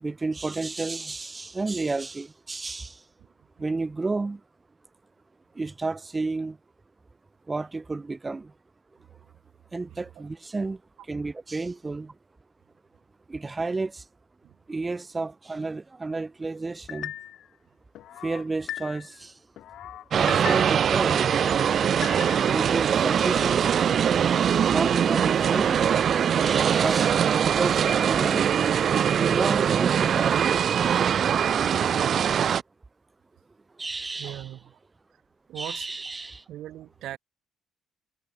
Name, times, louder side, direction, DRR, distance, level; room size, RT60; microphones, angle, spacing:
voice 1, 0.0-3.0 3.6-4.4 5.6-6.6 7.5-8.5 9.7-10.8 11.1-12.1 13.3-14.0 14.7-17.1 18.2-19.3 20.2-21.3 22.5-23.6 24.7-25.8 26.4-28.5 29.1-30.3 33.8-34.5 35.6-36.4, right 3 dB, 25° right, 2.1 m, -31 dB
sound 1, 16.9-17.5 17.9-19.2 19.6-20.9 21.3-22.6 23.0-23.5, left 12 dB, 75° left, 5.2 m, -39 dB
sound 2, 20.1-32.6, right 8 dB, 55° right, 0.7 m, -22 dB
voice 2, 34.2-34.8 35.5-35.9 36.5-37.2, right 13 dB, 80° right, 5.9 m, -39 dB
cardioid pair, 90°, 0 cm